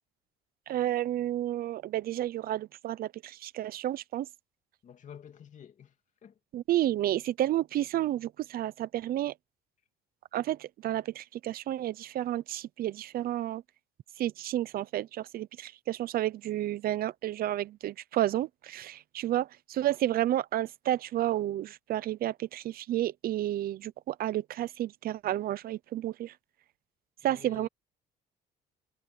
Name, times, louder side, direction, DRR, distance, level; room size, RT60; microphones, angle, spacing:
voice 1, 0.7-4.3 6.5-9.3 10.3-13.6 14.2-26.3 27.2-27.7, right 13 dB, 60° right, 0.7 m, -31 dB
voice 2, 4.8-6.0 6.2-6.4 27.2-27.7, left 8 dB, 45° left, 2.6 m, -49 dB
cardioid pair, 110°, 17 cm